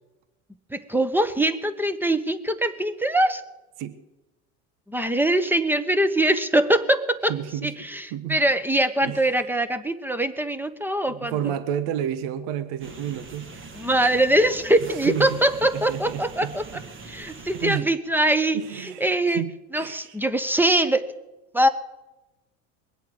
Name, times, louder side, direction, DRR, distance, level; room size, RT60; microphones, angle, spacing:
voice 1, 0.7-3.4 4.9-7.3 7.6-11.4 13.7-16.8 17.1-19.4 19.7-21.0 21.5-21.7, right 1 dB, 5° right, 11 dB, 1.3 m, -22 dB
voice 2, 7.3-7.7 8.1-8.4 9.0-9.2 11.1-13.5 15.0-15.4 15.7-16.5 17.3-17.4 17.6-17.9 18.5-20.1, right 10 dB, 65° right, 12 dB, 1.3 m, -31 dB
sound 1, 12.8-17.8, right 3 dB, 25° right, 1.8 m, -42 dB
21.5 x 8.3 x 7.9 m, 1.0 s
hypercardioid pair, 90°, 44 cm